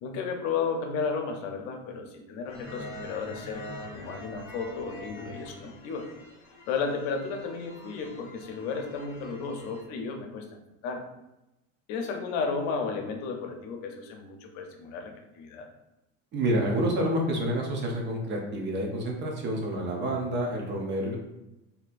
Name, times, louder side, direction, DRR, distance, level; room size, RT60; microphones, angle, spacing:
voice 1, 0.0-3.6 3.9-6.1 6.7-10.4 10.8-11.1 11.9-15.7, left 5 dB, 70° left, 3 dB, 0.7 m, -33 dB
sound 1, 2.5-9.8, left 2 dB, 45° left, 1.0 m, -44 dB
voice 2, 16.3-21.2, right 1 dB, 30° right, 0 dB, 0.6 m, -28 dB
4.2 x 2.7 x 2.5 m, 0.94 s
cardioid pair, 160°, 34 cm